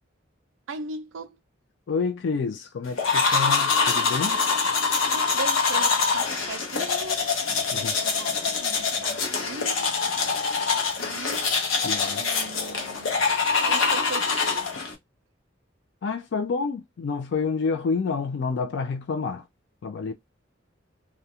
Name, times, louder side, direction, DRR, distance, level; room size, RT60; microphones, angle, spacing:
voice 1, 0.7-1.4 5.1-7.2 7.7-10.0 11.0-11.4 12.2-13.1 13.6-14.7, right 4 dB, 80° right, 0.4 m, -38 dB
voice 2, 1.9-4.4 7.7-7.9 11.8-12.2 16.0-19.4 19.8-20.1, left 4 dB, 60° left, 0.4 m, -28 dB
sound 1, 3.0-14.9, left 4 dB, 85° left, 0.8 m, -24 dB
2.3 x 2.2 x 2.7 m
head